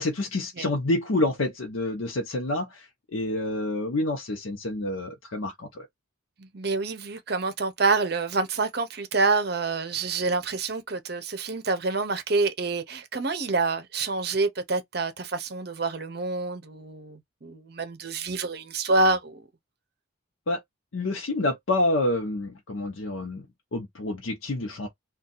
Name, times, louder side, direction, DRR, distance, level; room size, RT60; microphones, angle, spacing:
voice 1, 0.0-5.8 20.5-20.6 20.9-23.4 23.7-24.9, left 2 dB, 80° left, 0.7 m, -28 dB
voice 2, 6.4-19.4, right 3 dB, 50° right, 0.7 m, -27 dB
2.6 x 2.4 x 3.9 m
head